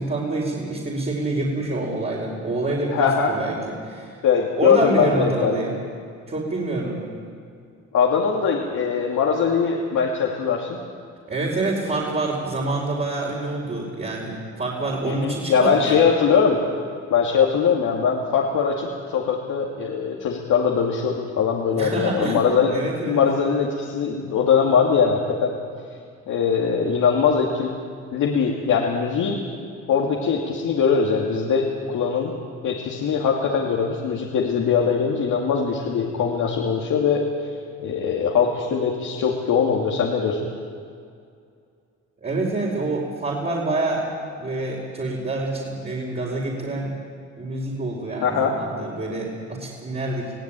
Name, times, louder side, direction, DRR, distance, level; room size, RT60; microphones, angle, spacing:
voice 1, 0.0-4.2 4.6-5.7 6.3-7.0 11.3-16.0 21.7-22.4 22.7-23.2 42.2-44.1 44.4-46.9 47.4-50.3, right 2 dB, 35° right, -4 dB, 5.0 m, -27 dB
voice 2, 2.9-3.3 4.2-5.6 7.9-10.8 15.1-16.6 17.1-22.7 23.1-25.5 26.3-27.7 28.1-29.4 29.9-32.3 32.6-37.2 37.8-40.4 48.2-48.5, left 6 dB, 80° left, -1 dB, 2.5 m, -21 dB
22.5 x 16.5 x 9.0 m, 2.3 s
cardioid pair, 90°, 30 cm